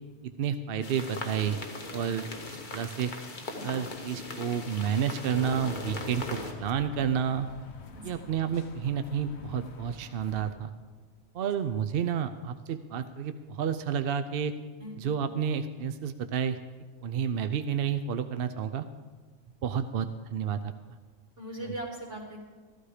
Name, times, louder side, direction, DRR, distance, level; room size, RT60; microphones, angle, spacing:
voice 1, 0.2-1.6 1.9-3.1 3.6-7.5 8.0-10.7 11.3-14.5 15.0-16.6 17.0-18.9 19.6-20.7 21.7-21.8, right 8 dB, 60° right, 10 dB, 0.7 m, -30 dB
sound 1, 0.8-6.5, left 2 dB, 45° left, 1.4 m, -39 dB
sound 2, 5.2-10.5, left 4 dB, 65° left, 1.2 m, -47 dB
voice 2, 7.9-8.3 11.4-11.5 14.8-14.9 21.4-22.4, right 1 dB, 80° right, -1 dB, 2.8 m, -40 dB
14.5 x 12.5 x 4.9 m, 1.4 s
omnidirectional pair, 1.2 m